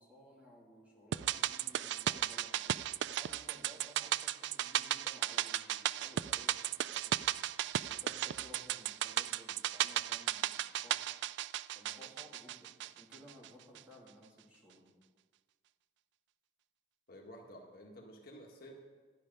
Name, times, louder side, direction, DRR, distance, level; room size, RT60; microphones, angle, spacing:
voice 1, 0.0-7.2 7.9-11.1 11.7-14.9, equal, 10° right, -4 dB, 2.5 m, -57 dB
sound 1, 1.1-13.5 13.7-13.8, right 12 dB, 80° right, 0.3 m, -35 dB
voice 2, 17.1-18.8, equal, 55° left, 1 dB, 1.6 m, -52 dB
12.0 x 9.7 x 5.4 m, 1.4 s
head